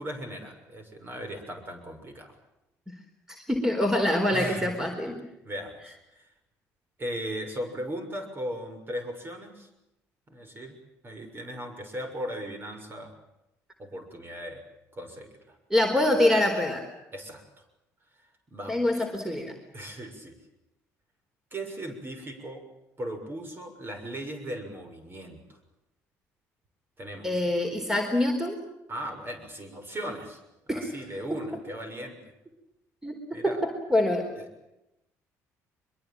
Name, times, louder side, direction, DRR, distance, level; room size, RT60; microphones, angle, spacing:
voice 1, 0.0-2.3 4.3-4.9 5.4-6.3 7.0-9.7 10.3-10.8 11.0-13.1 13.8-14.6 14.9-15.6 17.1-17.4 18.5-19.1 19.7-20.4 21.5-22.6 23.0-25.6 27.0-27.4 28.9-30.4 30.7-32.2 33.3-33.6 34.4-34.5, equal, 35° right, 6 dB, 6.8 m, -37 dB
voice 2, 3.3-5.2 15.7-16.8 18.7-19.5 27.2-28.6 30.7-30.9 33.0-34.3, left 1 dB, 5° right, 4 dB, 4.3 m, -25 dB
24.0 x 22.5 x 9.1 m, 0.89 s
supercardioid pair, 75°, 7 cm